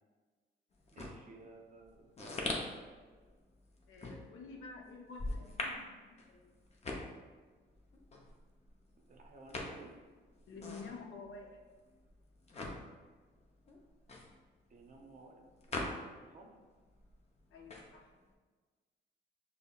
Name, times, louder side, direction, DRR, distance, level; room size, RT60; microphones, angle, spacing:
sound 1, 0.7-16.5 16.7-18.3, left 2 dB, 35° left, 0.6 m, -43 dB
voice 1, 0.9-2.9 9.1-9.9 14.7-16.6, right 3 dB, 40° right, 1 dB, 0.6 m, -56 dB
voice 2, 3.9-6.6 10.5-11.6 17.5-18.1, left 4 dB, 85° left, 0 dB, 0.6 m, -50 dB
5.3 x 2.1 x 2.3 m, 1.4 s
cardioid pair, 90°, 20 cm